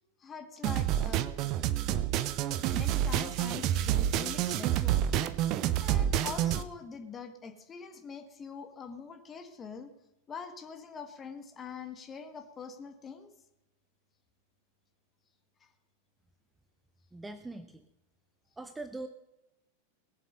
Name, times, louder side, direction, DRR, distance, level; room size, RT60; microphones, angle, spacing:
voice 1, 0.2-1.3 2.7-5.1 5.8-9.9 10.3-13.3, left 6 dB, 20° left, 6 dB, 1.8 m, -44 dB
sound 1, 0.6-6.6, right 11 dB, 40° right, 0.7 m, -28 dB
voice 2, 17.1-17.8 18.6-19.1, right 2 dB, 10° right, 9 dB, 0.8 m, -41 dB
20.0 x 7.4 x 5.6 m, 0.92 s
figure-of-eight pair, 90°, 0 cm